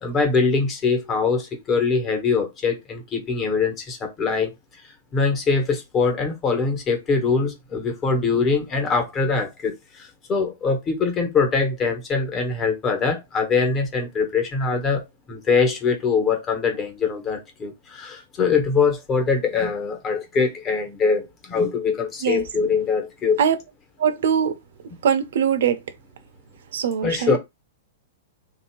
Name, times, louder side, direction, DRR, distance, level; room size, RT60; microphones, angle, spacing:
voice 1, 0.0-4.5 5.1-23.4 27.0-27.4, left 5 dB, 25° left, 1.3 m, -23 dB
voice 2, 24.0-24.5 25.0-25.8 26.7-27.4, right 8 dB, 75° right, 0.8 m, -21 dB
3.2 x 2.8 x 4.6 m
hypercardioid pair, 145°, 0 cm